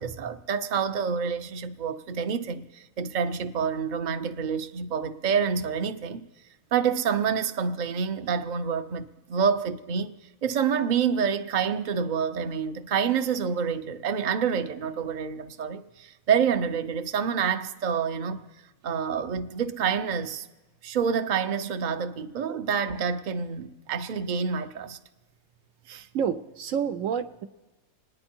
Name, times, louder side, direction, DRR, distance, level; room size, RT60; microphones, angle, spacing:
voice 1, 0.0-6.3 6.7-10.1 10.4-18.5 18.8-20.5 20.8-25.0 25.9-26.1, right 6 dB, 45° right, 0.6 m, -27 dB
voice 2, 26.1-27.5, right 7 dB, 70° right, 1.0 m, -28 dB
26.5 x 9.9 x 4.4 m
omnidirectional pair, 1.6 m